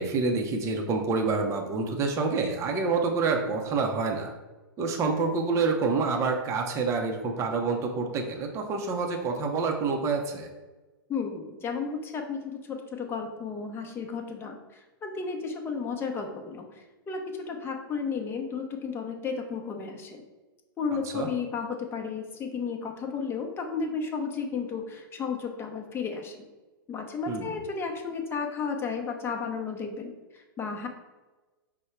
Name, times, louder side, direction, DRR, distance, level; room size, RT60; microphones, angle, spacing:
voice 1, 0.0-4.3 4.8-10.5 21.0-21.3 27.3-27.6, right 4 dB, 25° right, 2 dB, 0.6 m, -27 dB
voice 2, 11.1-14.6 15.0-16.6 17.1-20.2 20.8-26.5 26.9-30.9, left 5 dB, 20° left, 3 dB, 0.7 m, -33 dB
5.4 x 2.1 x 4.3 m, 1.2 s
hypercardioid pair, 115°, 12 cm